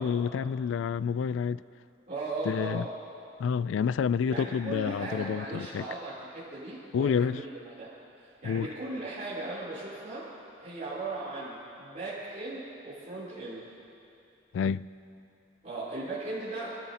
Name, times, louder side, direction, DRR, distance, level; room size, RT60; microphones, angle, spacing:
voice 1, 0.0-1.6 2.5-2.8 3.4-5.9 6.9-7.4 8.4-8.7 14.5-14.9, left 6 dB, 85° left, 17 dB, 0.3 m, -28 dB
voice 2, 2.1-2.9 4.3-7.5 7.8-7.9 8.2-10.3 10.6-13.6 15.6-16.8, right 2 dB, 40° right, -11 dB, 3.4 m, -37 dB
25.0 x 14.0 x 2.9 m, 2.6 s
head